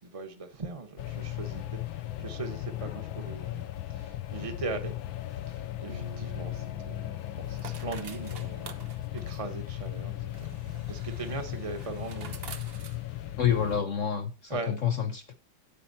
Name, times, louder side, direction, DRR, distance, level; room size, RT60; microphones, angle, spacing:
voice 1, 0.0-4.9 5.3-8.9 9.1-12.3 14.5-14.8, right 3 dB, 20° right, 1.0 m, -40 dB
sound 1, 1.0-13.8, left 14 dB, 85° left, 1.5 m, -37 dB
Piano, 5.9-8.8, right 1 dB, 80° right, 3.0 m, -49 dB
sound 2, 6.1-13.8, right 6 dB, 60° right, 0.6 m, -49 dB
voice 2, 13.4-15.3, left 8 dB, 60° left, 0.8 m, -28 dB
9.6 x 8.3 x 4.1 m
omnidirectional pair, 2.1 m